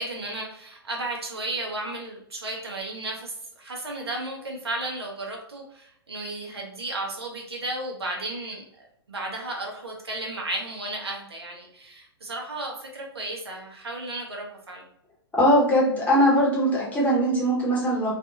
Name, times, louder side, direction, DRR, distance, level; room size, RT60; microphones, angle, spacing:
voice 1, 0.0-14.8, right 2 dB, 70° right, 0 dB, 0.8 m, -34 dB
voice 2, 15.3-18.1, equal, 10° left, -5 dB, 0.9 m, -21 dB
2.5 x 2.4 x 2.7 m, 0.74 s
figure-of-eight pair, 110°, 14 cm